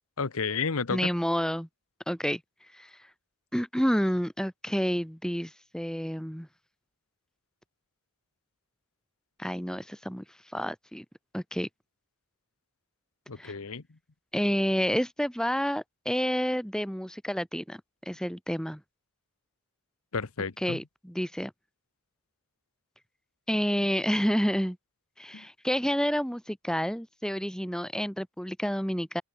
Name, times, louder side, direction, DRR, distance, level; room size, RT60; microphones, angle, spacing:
voice 1, 0.2-1.1 13.3-13.8 20.1-20.8 25.3-25.4, left 5 dB, 80° left, 1.0 m, -31 dB
voice 2, 0.9-1.7 2.1-2.4 2.7-2.9 3.5-6.5 9.4-10.2 10.5-11.0 11.3-11.7 13.4-13.5 14.3-17.8 18.1-18.8 20.6-21.5 23.5-24.8 25.2-29.2, equal, 5° left, 2.5 m, -29 dB
open air
head